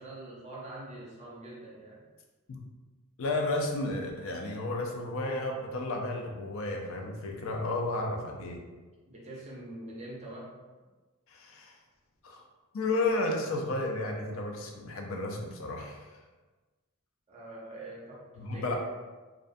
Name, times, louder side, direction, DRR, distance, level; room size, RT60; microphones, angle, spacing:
voice 1, 0.0-2.0 9.1-10.6 17.3-18.8, right 1 dB, 35° right, -5 dB, 0.5 m, -44 dB
voice 2, 3.2-8.6 11.3-11.8 12.2-12.4 12.7-16.1 18.4-18.8, left 2 dB, 70° left, 2 dB, 0.4 m, -32 dB
2.4 x 2.2 x 2.5 m, 1.3 s
head